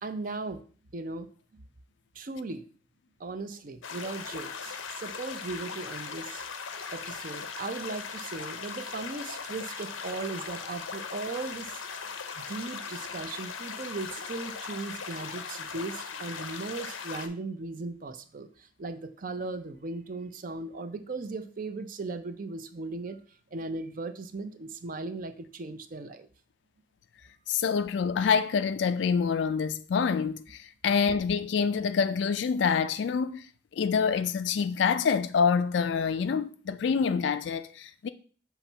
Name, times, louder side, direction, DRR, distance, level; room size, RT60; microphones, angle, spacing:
voice 1, 0.0-0.6 0.9-1.3 1.5-1.6 2.1-2.7 3.2-6.4 6.9-11.8 12.4-23.2 23.5-26.3, right 3 dB, 45° right, 0.5 m, -37 dB
sound 1, 3.8-17.3, left 5 dB, 90° left, 0.7 m, -39 dB
voice 2, 27.5-33.5 33.7-38.1, left 6 dB, 65° left, 0.3 m, -26 dB
5.7 x 3.0 x 5.5 m
head